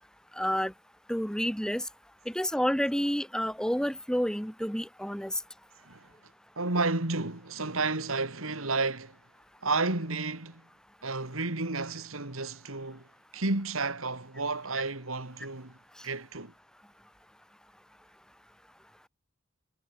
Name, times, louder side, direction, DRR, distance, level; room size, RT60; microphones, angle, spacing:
voice 1, 0.4-0.7 1.1-1.8 2.3-5.3, equal, 5° left, 5.2 m, -29 dB
voice 2, 6.6-9.2 9.6-10.6 11.0-13.1 13.3-15.7 16.0-16.5, right 3 dB, 90° right, 3.3 m, -31 dB
head